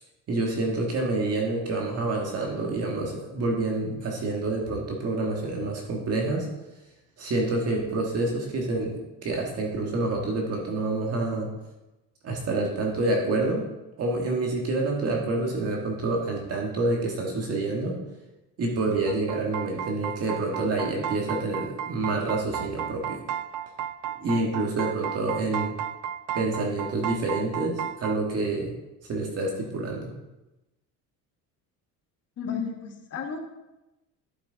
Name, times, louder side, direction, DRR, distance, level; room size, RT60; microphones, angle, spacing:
voice 1, 0.3-6.5 7.2-11.5 12.2-13.7 14.0-18.0 18.6-23.2 24.2-25.7 26.3-28.7 29.1-30.1, right 2 dB, 45° right, 0 dB, 1.8 m, -27 dB
sound 1, 19.1-28.2, right 10 dB, 60° right, 0.4 m, -34 dB
voice 2, 32.4-33.4, left 6 dB, 45° left, 3 dB, 1.4 m, -33 dB
11.5 x 6.2 x 4.0 m, 0.98 s
cardioid pair, 145°, 35 cm